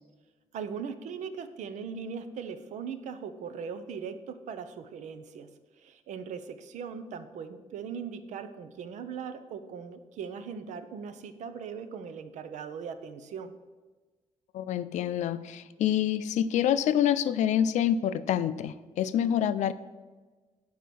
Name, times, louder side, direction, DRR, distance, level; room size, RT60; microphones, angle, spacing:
voice 1, 0.5-5.5 5.8-13.5, right 6 dB, 80° right, 10 dB, 0.8 m, -39 dB
voice 2, 14.5-19.7, left 10 dB, 80° left, 14 dB, 0.5 m, -27 dB
9.3 x 4.7 x 6.9 m, 1.3 s
cardioid pair, 140°, 12 cm